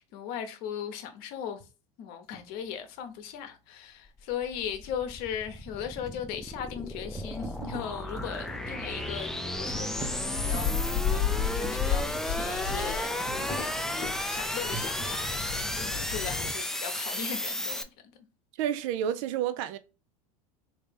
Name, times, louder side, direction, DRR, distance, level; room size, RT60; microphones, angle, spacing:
voice 1, 0.0-1.6 2.0-13.2 13.5-13.8 14.3-17.9, left 8 dB, 60° left, 0.8 m, -38 dB
sound 1, 2.3-2.5 5.5-14.3 14.7-15.5, right 4 dB, 20° right, 0.8 m, -43 dB
sound 2, 4.1-17.8, left 1 dB, ahead, 0.3 m, -34 dB
sound 3, 8.3-16.5, left 7 dB, 30° left, 1.0 m, -34 dB
voice 2, 18.6-19.8, right 10 dB, 65° right, 0.5 m, -30 dB
3.2 x 2.8 x 3.3 m
hypercardioid pair, 95°, 18 cm